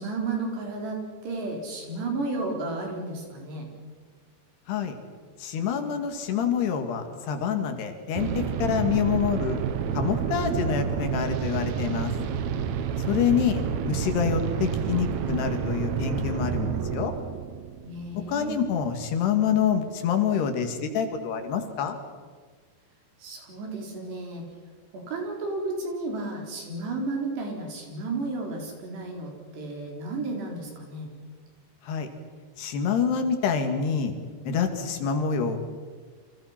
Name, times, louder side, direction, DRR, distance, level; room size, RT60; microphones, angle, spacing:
voice 1, 0.0-3.7 13.6-13.8 17.8-18.5 23.2-24.4 24.9-31.1, right 3 dB, 70° right, 1 dB, 6.4 m, -33 dB
voice 2, 5.4-9.6 9.9-12.1 13.1-17.1 18.1-22.0 31.8-32.1 32.6-34.1 34.4-35.6, left 7 dB, 70° left, 6 dB, 4.1 m, -26 dB
sound 1, 8.2-18.9, right 7 dB, 85° right, 1.5 m, -29 dB
29.5 x 25.5 x 5.9 m, 1.5 s
omnidirectional pair, 5.1 m